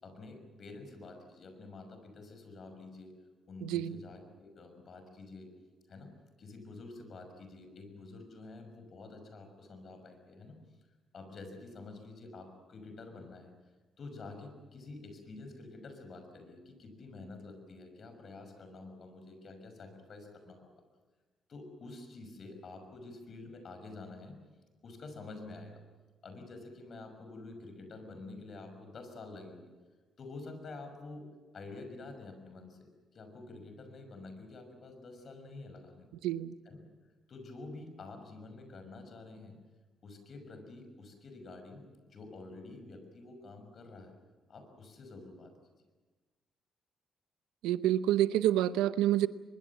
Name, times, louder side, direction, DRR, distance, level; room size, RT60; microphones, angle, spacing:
voice 1, 0.0-3.1 3.5-5.5 5.9-6.1 6.4-10.6 11.1-13.5 14.0-20.8 21.5-24.4 24.8-25.8 26.2-29.7 30.2-36.1 36.6-36.8 37.3-39.6 40.0-44.2 44.5-45.5, left 3 dB, 55° left, 7 dB, 6.0 m, -48 dB
voice 2, 3.6-4.0 36.2-36.5 47.6-49.3, right 13 dB, 90° right, 14 dB, 0.7 m, -28 dB
23.5 x 22.5 x 7.2 m, 1.3 s
supercardioid pair, 65°, 0 cm